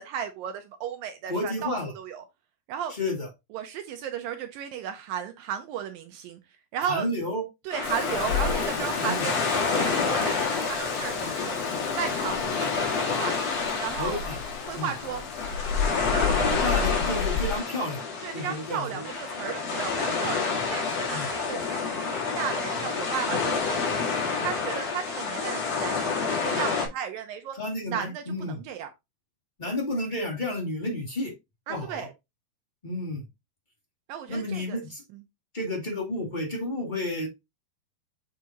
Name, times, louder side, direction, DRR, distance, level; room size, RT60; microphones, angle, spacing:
voice 1, 0.0-2.2 2.7-2.9 3.5-6.4 6.7-7.1 7.6-11.6 12.0-13.4 13.8-14.2 14.7-15.3 16.1-16.9 18.2-27.6 27.9-28.9 31.7-32.1 34.1-34.8 35.1-35.2, right 9 dB, 75° right, 2.2 m, -35 dB
voice 2, 1.3-1.9 3.0-3.3 6.9-7.4 9.0-9.2 14.0-14.4 14.7-14.9 16.6-18.0 18.3-19.0 21.1-21.3 27.5-28.6 29.6-31.3 31.7-32.1 32.8-33.2 34.3-35.0 35.5-37.3, left 1 dB, 20° left, 1.4 m, -31 dB
sound 1, 7.7-26.9, left 5 dB, 50° left, 2.9 m, -28 dB
Rain, 7.8-17.6, left 7 dB, 75° left, 2.2 m, -33 dB
7.5 x 4.6 x 2.9 m
omnidirectional pair, 4.5 m